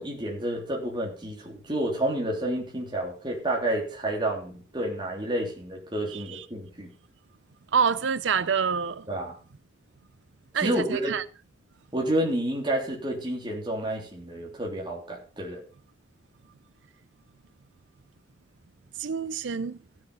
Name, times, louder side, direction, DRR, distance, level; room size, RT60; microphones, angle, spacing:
voice 1, 0.0-6.9 9.1-9.3 10.6-11.1 11.9-15.6, right 1 dB, 25° right, 3.3 m, -30 dB
voice 2, 6.1-6.5 7.7-9.1 10.5-11.2 19.0-19.8, right 6 dB, 80° right, 0.5 m, -27 dB
15.0 x 7.3 x 5.7 m
head